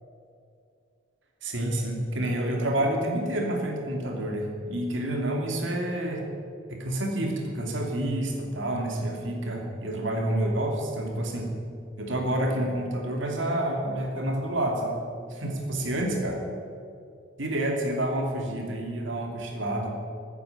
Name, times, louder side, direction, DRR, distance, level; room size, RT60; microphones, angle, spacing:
voice 1, 1.4-6.3 6.7-11.5 12.0-15.0 15.3-16.4 17.4-19.9, right 1 dB, 65° right, 1 dB, 2.8 m, -28 dB
15.0 x 9.5 x 8.6 m, 2.4 s
head